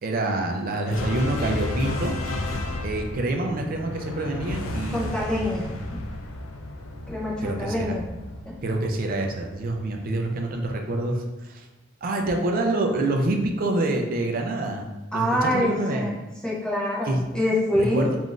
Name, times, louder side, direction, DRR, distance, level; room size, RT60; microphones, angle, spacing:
voice 1, 0.0-2.1 2.8-5.0 7.4-8.0 8.6-11.7 12.0-14.9 15.1-16.2 17.0-17.2 17.8-18.2, right 2 dB, 45° right, 3 dB, 0.4 m, -26 dB
sound 1, 0.8-9.4, left 2 dB, 85° left, 0.4 m, -32 dB
voice 2, 4.9-5.7 5.9-6.0 7.1-8.0 15.1-16.1 16.4-18.1, left 1 dB, 5° left, -5 dB, 0.6 m, -25 dB
3.6 x 2.5 x 2.3 m, 1.0 s
head